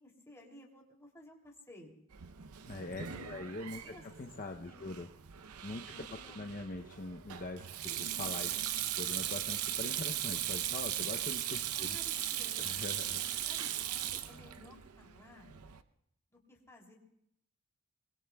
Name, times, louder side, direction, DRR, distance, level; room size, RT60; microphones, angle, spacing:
voice 1, 0.0-2.0 3.0-3.5 3.8-4.1 4.4-5.1 5.8-6.4 11.7-12.8 13.5-15.5 16.3-17.0, left 1 dB, 15° left, -1 dB, 2.8 m, -56 dB
Sink (filling or washing), 2.1-15.8, right 11 dB, 80° right, 0.7 m, -38 dB
voice 2, 2.7-3.8 4.2-5.1 5.6-5.8 6.3-12.0 12.6-13.2, left 2 dB, 40° left, 4 dB, 0.6 m, -43 dB
24.5 x 22.0 x 2.3 m, 0.77 s
head